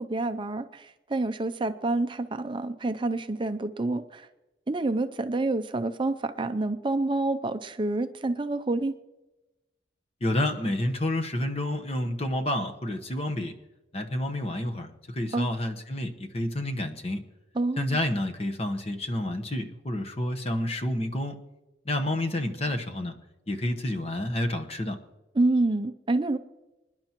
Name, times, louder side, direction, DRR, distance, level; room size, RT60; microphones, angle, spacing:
voice 1, 0.0-4.3 4.7-8.9 15.3-15.5 17.5-18.0 25.3-26.4, right 2 dB, 25° right, 9 dB, 0.5 m, -28 dB
voice 2, 10.2-13.5 13.9-17.2 17.8-21.4 21.9-23.1 23.5-25.0, left 1 dB, 35° left, 6 dB, 1.1 m, -29 dB
26.0 x 10.5 x 3.0 m, 1.0 s
head